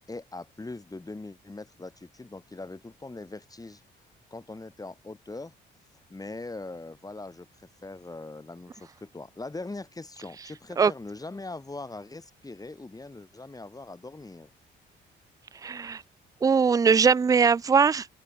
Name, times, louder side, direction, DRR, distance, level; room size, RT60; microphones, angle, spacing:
voice 1, 0.1-3.8 4.3-5.5 6.1-14.5, left 2 dB, 20° left, 6.6 m, -41 dB
voice 2, 15.6-16.0 16.4-18.1, right 6 dB, 20° right, 0.3 m, -21 dB
cardioid pair, 90°, 20 cm